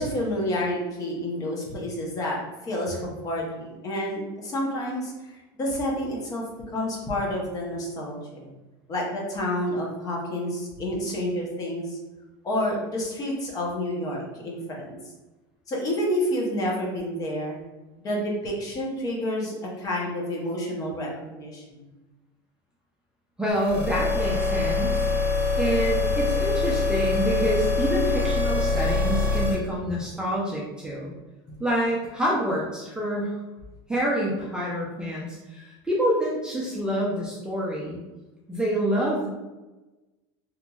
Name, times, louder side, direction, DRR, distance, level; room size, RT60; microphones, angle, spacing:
voice 1, 0.0-8.5 8.9-12.0 12.4-15.0 15.7-17.6 18.0-21.9 31.5-31.6, left 1 dB, 30° left, -2 dB, 0.7 m, -29 dB
voice 2, 23.4-25.0 25.6-31.1 31.6-33.3 33.9-38.0 38.5-39.3, right 1 dB, 5° right, -5 dB, 0.4 m, -27 dB
sound 1, 23.6-29.5, left 3 dB, 60° left, 1.3 m, -24 dB
2.9 x 2.5 x 2.3 m, 1.1 s
supercardioid pair, 135°, 11 cm